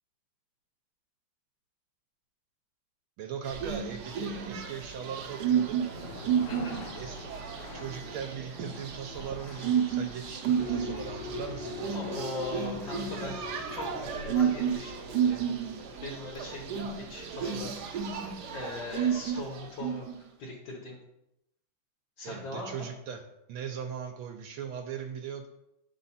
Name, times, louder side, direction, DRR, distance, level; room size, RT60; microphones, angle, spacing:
voice 1, 3.2-5.8 7.0-7.3 7.7-12.2 22.2-23.2 23.5-25.5, right 7 dB, 85° right, 3 dB, 1.4 m, -39 dB
sound 1, 3.4-20.2, right 8 dB, 65° right, 1.0 m, -32 dB
sound 2, 5.5-17.4, left 4 dB, 90° left, 0.6 m, -49 dB
voice 2, 6.5-6.8 11.9-13.4 13.7-15.6 16.0-17.7 18.5-21.0 22.2-22.9, left 2 dB, 70° left, -4 dB, 1.7 m, -40 dB
sound 3, 10.6-17.7, left 4 dB, 50° left, 1.0 m, -42 dB
6.9 x 3.9 x 4.1 m, 0.85 s
omnidirectional pair, 2.3 m